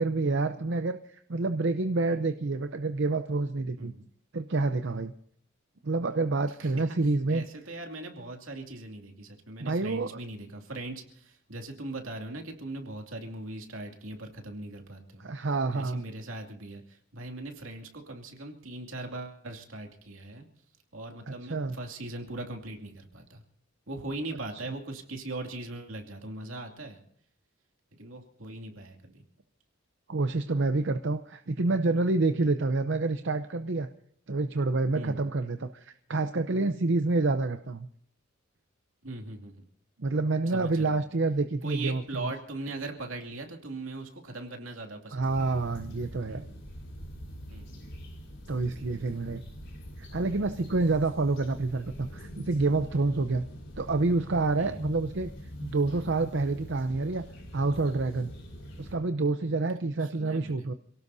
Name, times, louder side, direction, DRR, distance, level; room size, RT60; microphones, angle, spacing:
voice 1, 0.0-3.9 4.3-5.1 5.8-7.4 9.6-10.1 15.2-16.0 21.3-21.8 30.1-33.9 34.3-37.9 40.0-42.3 45.1-46.4 48.5-49.4 50.0-53.5 53.8-55.3 55.6-57.2 57.5-58.3 58.8-60.7, right 3 dB, 60° right, 8 dB, 0.7 m, -28 dB
voice 2, 3.8-4.1 6.6-7.0 7.3-15.3 15.7-20.5 20.9-23.4 23.9-27.0 28.0-29.2 34.9-35.2 39.0-39.6 40.5-41.0 41.6-45.4 46.3-46.6 47.5-47.9 50.7-50.8 54.6-54.8 60.0-60.7, right 2 dB, 80° right, 3 dB, 2.5 m, -40 dB
sound 1, 45.2-59.0, equal, 60° left, 5.0 m, -44 dB
27.5 x 18.0 x 2.7 m, 0.65 s
head